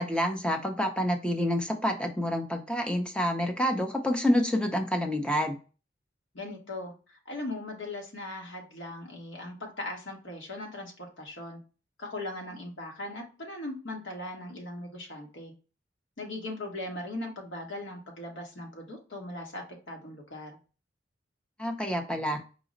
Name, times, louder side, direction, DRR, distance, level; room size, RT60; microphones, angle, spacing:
voice 1, 0.0-5.6 21.6-22.4, equal, 5° left, 4 dB, 0.6 m, -28 dB
voice 2, 6.3-11.6 12.0-15.5 16.2-20.6, left 1 dB, 70° left, 1 dB, 1.3 m, -39 dB
4.8 x 2.1 x 3.8 m, 0.34 s
head